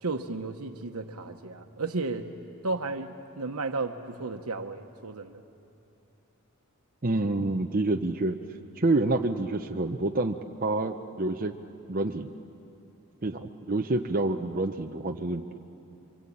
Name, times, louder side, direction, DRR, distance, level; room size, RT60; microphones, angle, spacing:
voice 1, 0.0-2.3 2.6-5.4, right 3 dB, 90° right, 5 dB, 1.1 m, -33 dB
voice 2, 7.0-8.4 8.8-11.6 11.9-12.3 13.2-15.7, right 2 dB, 40° right, 4 dB, 0.8 m, -28 dB
27.5 x 24.5 x 8.7 m, 2.8 s
head